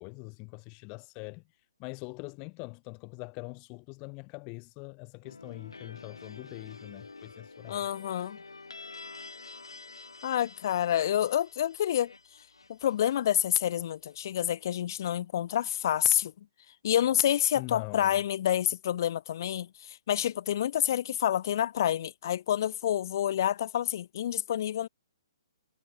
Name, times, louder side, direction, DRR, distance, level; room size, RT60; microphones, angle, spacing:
voice 1, 0.0-1.4 1.8-7.9 17.6-18.1, left 33 dB, 25° left, 0.5 m, -43 dB
sound 1, 5.2-14.1, left 3 dB, 75° left, 3.3 m, -49 dB
voice 2, 7.7-8.4 10.2-12.1 12.7-16.3 16.8-24.9, left 11 dB, 45° left, 0.8 m, -28 dB
figure-of-eight pair, 130°, 3 cm